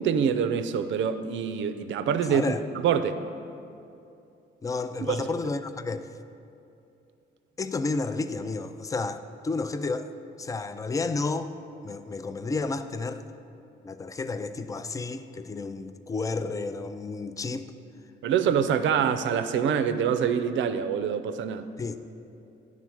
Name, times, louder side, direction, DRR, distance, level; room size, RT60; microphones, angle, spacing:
voice 1, 0.0-3.2 5.1-5.3 18.2-21.7, right 7 dB, 70° right, 10 dB, 0.5 m, -25 dB
voice 2, 2.3-2.6 4.6-6.1 7.6-10.1 10.4-11.5 11.8-13.2 13.8-17.7 21.8-22.0, left 3 dB, 15° left, 11 dB, 0.3 m, -31 dB
10.0 x 3.7 x 6.3 m, 2.6 s
cardioid pair, 90°, 20 cm